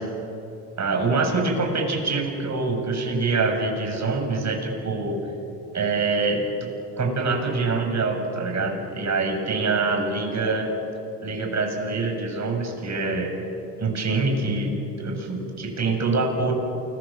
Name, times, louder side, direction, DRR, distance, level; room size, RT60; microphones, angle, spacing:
voice 1, 0.8-5.2 5.7-6.5 7.0-10.7 11.2-13.3 13.8-16.5, right 3 dB, 35° right, 2 dB, 7.3 m, -25 dB
28.5 x 22.0 x 7.5 m, 2.8 s
hypercardioid pair, 75°, 47 cm